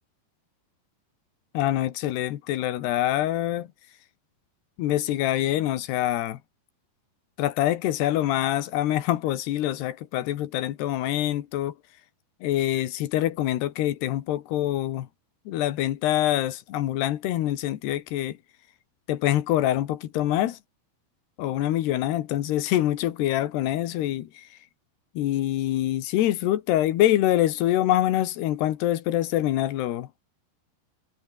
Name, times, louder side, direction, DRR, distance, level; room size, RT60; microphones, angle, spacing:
voice 1, 1.6-3.7 4.8-6.4 7.4-11.8 12.4-15.1 15.5-18.4 19.1-20.6 21.4-24.5 25.2-30.1, left 13 dB, 80° left, 3.5 m, -25 dB
omnidirectional pair, 4.7 m